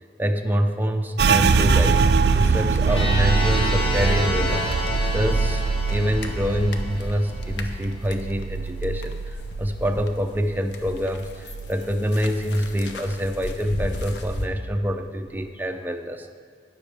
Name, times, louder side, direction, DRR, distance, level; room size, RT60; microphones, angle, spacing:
voice 1, 0.2-2.0 2.3-4.7 5.1-16.3, equal, 10° right, 5 dB, 0.5 m, -26 dB
sound 1, 1.2-10.6 10.9-12.1 12.4-12.9 13.4-14.0, right 5 dB, 65° right, 0.4 m, -24 dB
sound 2, 1.5-10.1 10.5-14.5, left 1 dB, 75° left, 0.7 m, -33 dB
sound 3, 2.8-7.7, left 1 dB, 30° left, 1.0 m, -30 dB
17.0 x 6.3 x 3.4 m, 2.2 s
head